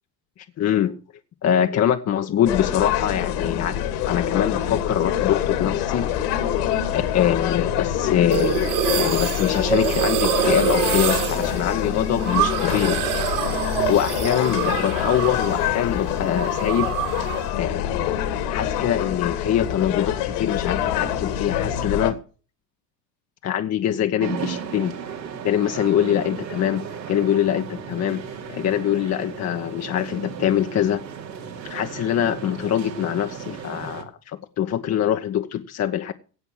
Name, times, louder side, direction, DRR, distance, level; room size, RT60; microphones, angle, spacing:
voice 1, 0.6-1.0 1.4-6.2 6.9-8.6 8.9-13.0 13.5-13.6 13.9-16.9 17.5-18.2 18.5-22.2 23.4-24.9 25.4-28.2 28.5-31.0 31.6-36.1, left 10 dB, 30° left, 1.0 m, -23 dB
sound 1, 2.4-22.1, left 10 dB, 65° left, 2.7 m, -25 dB
sound 2, 8.3-15.7 16.0-17.5, right 10 dB, 60° right, 2.8 m, -26 dB
sound 3, 24.2-34.0, right 7 dB, 85° right, 2.9 m, -35 dB
17.5 x 5.8 x 7.3 m
hypercardioid pair, 75°, 50 cm